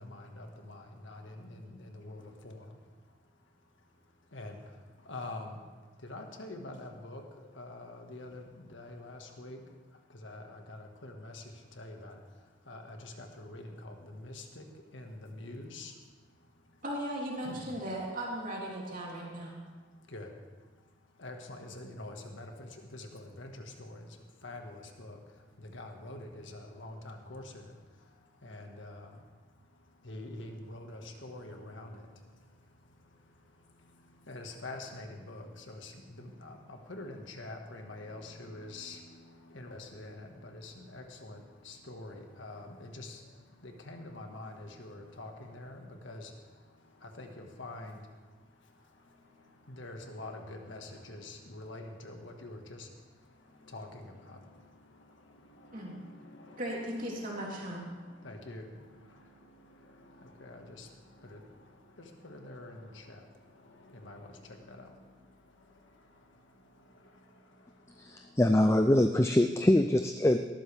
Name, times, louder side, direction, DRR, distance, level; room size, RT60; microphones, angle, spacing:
voice 1, 0.0-16.8 17.4-17.8 19.5-68.4, left 2 dB, 80° left, 3 dB, 1.7 m, -47 dB
voice 2, 16.8-19.5 55.7-56.0 56.6-57.9, right 1 dB, 45° right, -4 dB, 3.4 m, -37 dB
voice 3, 68.0-70.4, left 1 dB, 15° left, 7 dB, 0.4 m, -24 dB
19.0 x 13.5 x 3.5 m, 1.4 s
head